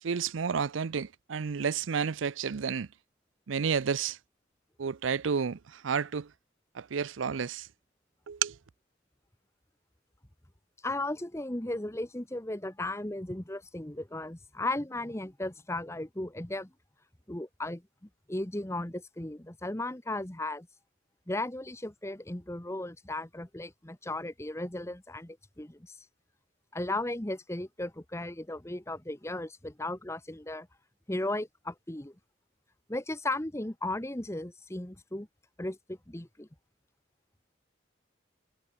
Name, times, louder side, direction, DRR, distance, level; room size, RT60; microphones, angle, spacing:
voice 1, 0.0-2.9 3.5-4.2 4.8-6.3 6.7-7.7 8.3-8.6, right 6 dB, 90° right, 0.5 m, -31 dB
voice 2, 10.8-16.7 17.3-17.8 18.3-20.7 21.3-25.9 26.7-30.7 31.1-32.1 32.9-35.3 35.6-36.5, left 2 dB, 15° left, 1.1 m, -36 dB
head